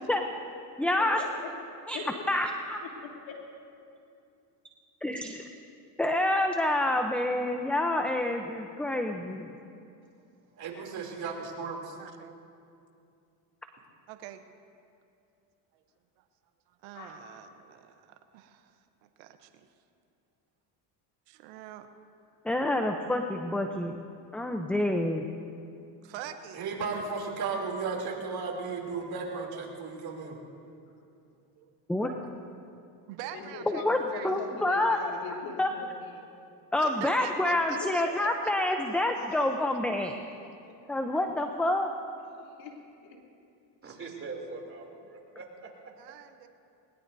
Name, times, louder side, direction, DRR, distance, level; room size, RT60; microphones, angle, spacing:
voice 1, 0.8-1.2 1.9-2.0 2.3-2.8 5.0-5.4 6.0-9.5 22.4-24.0 24.3-25.3 31.9-32.1 33.7-34.0 34.2-35.0 35.6-35.7 36.7-40.1 40.9-41.9, left 1 dB, 5° left, 5 dB, 0.6 m, -27 dB
voice 2, 10.6-12.0 26.5-30.4, right 4 dB, 50° right, -1 dB, 3.2 m, -34 dB
voice 3, 12.0-12.4 14.1-14.4 16.8-18.7 19.2-19.7 21.3-21.9 26.0-26.6 33.1-33.8 34.1-34.3 36.8-38.3 39.2-39.8 46.0-46.5, right 11 dB, 85° right, 8 dB, 1.0 m, -44 dB
voice 4, 33.3-36.2 37.7-38.7 42.3-42.8 43.0-43.2, left 4 dB, 70° left, -1 dB, 3.3 m, -41 dB
voice 5, 43.8-45.9, right 3 dB, 30° right, 0 dB, 3.1 m, -43 dB
21.0 x 20.0 x 2.7 m, 2.6 s
supercardioid pair, 100°, 48 cm